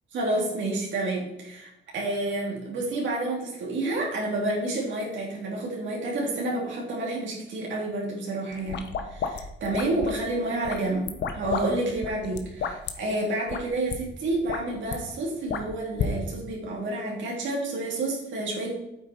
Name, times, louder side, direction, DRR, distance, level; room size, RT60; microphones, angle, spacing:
voice 1, 0.1-18.8, right 2 dB, 70° right, -3 dB, 3.7 m, -29 dB
sound 1, 8.5-10.2 10.6-11.6 11.9-12.9 13.5-13.6 13.9-14.0 14.3-15.0 15.5-16.1, left 6 dB, 65° left, 1.1 m, -31 dB
9.1 x 7.6 x 4.6 m, 0.87 s
cardioid pair, 90°, 20 cm